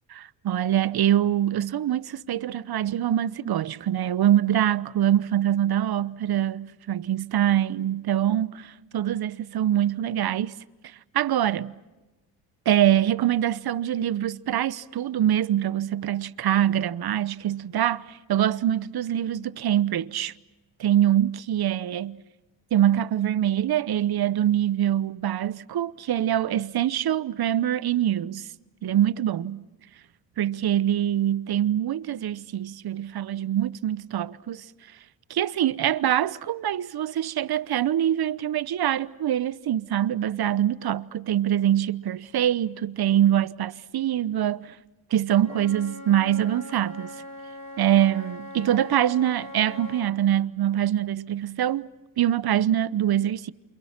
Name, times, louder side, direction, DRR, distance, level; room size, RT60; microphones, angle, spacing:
voice 1, 0.1-10.5 11.1-11.7 12.7-20.3 20.8-22.2 22.7-28.5 28.8-29.6 30.4-34.6 35.3-44.7 45.1-47.2 47.8-51.9 52.2-53.5, right 11 dB, 50° right, 1.0 m, -24 dB
Wind instrument woodwind instrument, 45.3-50.2, left 1 dB, 35° left, 2.9 m, -41 dB
29.5 x 28.0 x 5.9 m
hypercardioid pair, 55°, 49 cm